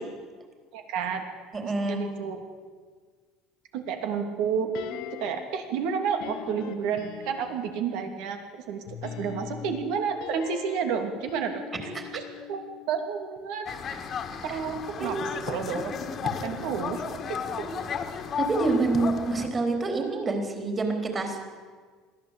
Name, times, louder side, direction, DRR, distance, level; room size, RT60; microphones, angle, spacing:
voice 1, 0.7-1.2 1.6-2.5 3.7-4.7 5.2-11.6 12.1-12.6 12.9-14.0 14.4-15.2 15.5-15.9 16.2-17.0 17.3-17.6, right 6 dB, 70° right, 6 dB, 2.8 m, -31 dB
voice 2, 1.5-2.0 11.9-12.1 14.5-14.6 15.0-15.2 18.4-21.4, right 3 dB, 25° right, 4 dB, 3.9 m, -27 dB
sound 1, 4.7-5.6 6.2-7.8 8.9-13.1 13.4-13.5, left 9 dB, 70° left, 1.5 m, -41 dB
sound 2, 13.7-19.5, left 6 dB, 40° left, 1.9 m, -33 dB
21.5 x 15.0 x 8.3 m, 1.5 s
supercardioid pair, 125°, 0 cm